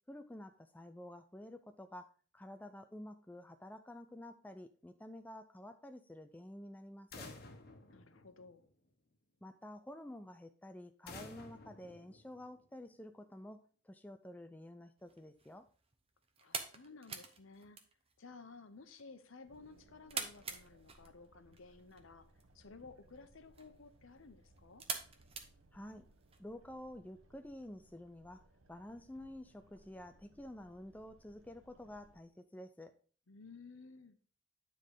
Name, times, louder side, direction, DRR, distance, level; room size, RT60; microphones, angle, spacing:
voice 1, 0.1-7.3 9.4-15.7 25.7-26.1 26.4-28.4 28.7-32.9, left 1 dB, 10° left, 8 dB, 0.3 m, -50 dB
sound 1, 7.1-8.9 11.1-12.8, left 3 dB, 50° left, 1.1 m, -53 dB
voice 2, 7.9-8.6 16.4-17.8 18.2-22.2 22.5-24.8 33.3-34.2, left 4 dB, 75° left, 10 dB, 0.9 m, -55 dB
sound 2, 15.0-26.4, right 5 dB, 30° right, 0.8 m, -48 dB
sound 3, 19.5-32.2, right 1 dB, 80° right, 1.0 m, -66 dB
9.5 x 3.8 x 4.9 m, 0.42 s
head